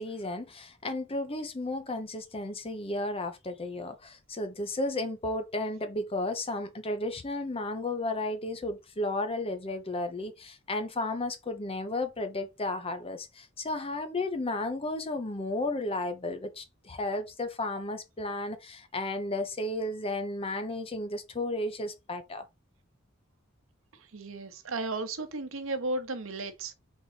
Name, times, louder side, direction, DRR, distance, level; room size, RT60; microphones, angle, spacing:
voice 1, 0.0-22.4, left 2 dB, 25° left, 0.7 m, -33 dB
voice 2, 24.1-26.7, right 2 dB, 65° right, 0.9 m, -34 dB
4.1 x 3.7 x 3.2 m
head